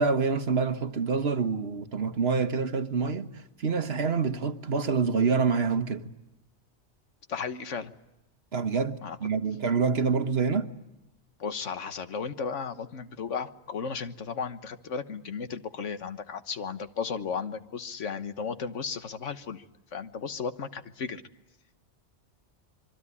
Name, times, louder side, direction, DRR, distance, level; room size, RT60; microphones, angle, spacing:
voice 1, 0.0-6.1 8.5-10.7, right 5 dB, 60° right, 1.5 m, -27 dB
voice 2, 7.3-7.9 9.0-9.2 11.4-19.6 19.9-21.2, left 5 dB, 85° left, 1.6 m, -34 dB
26.0 x 23.5 x 9.8 m
omnidirectional pair, 1.2 m